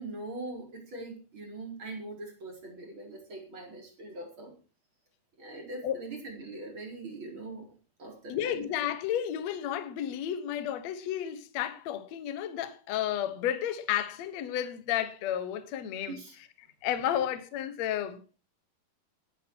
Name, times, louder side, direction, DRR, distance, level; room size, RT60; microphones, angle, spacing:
voice 1, 0.0-4.5 5.4-7.7 8.0-8.7 16.1-16.3, right 2 dB, 30° right, 4.8 m, -42 dB
voice 2, 8.3-16.2 16.8-18.2, left 10 dB, 60° left, 2.1 m, -32 dB
15.0 x 13.0 x 4.7 m
omnidirectional pair, 4.5 m